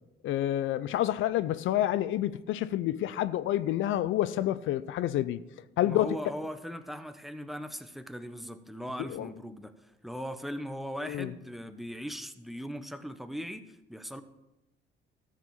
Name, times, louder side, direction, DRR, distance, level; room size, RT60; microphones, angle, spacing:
voice 1, 0.2-5.5 5.8-6.2 9.1-9.3 11.1-11.3, left 13 dB, 80° left, 0.5 m, -28 dB
voice 2, 5.8-9.7 10.0-14.2, equal, ahead, 0.8 m, -39 dB
14.0 x 5.0 x 7.2 m
cardioid pair, 90°, 20 cm